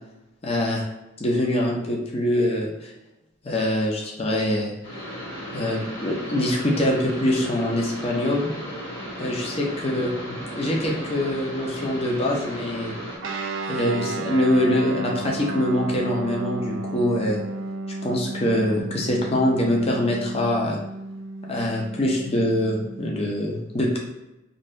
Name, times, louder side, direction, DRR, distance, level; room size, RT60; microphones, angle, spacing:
voice 1, 0.4-0.8 1.2-2.9 3.4-4.7 5.5-8.5 9.2-12.9 13.7-17.4 18.0-20.8 21.5-24.0, left 1 dB, 30° left, -1 dB, 0.5 m, -24 dB
sound 1, 4.8-13.2, equal, 65° left, 1.4 m, -35 dB
Guitar, 13.2-23.1, right 2 dB, 70° right, 0.4 m, -33 dB
2.6 x 2.6 x 3.2 m, 0.96 s
head